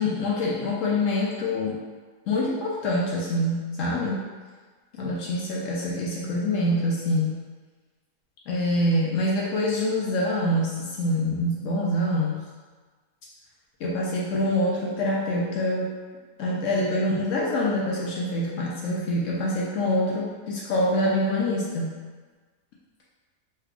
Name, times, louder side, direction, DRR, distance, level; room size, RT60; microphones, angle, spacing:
voice 1, 0.0-1.8 2.3-4.2 4.9-7.4 8.5-12.4 13.8-15.9 16.4-22.0, left 1 dB, 70° left, -4 dB, 0.7 m, -25 dB
3.3 x 2.2 x 3.5 m, 1.4 s
omnidirectional pair, 1.8 m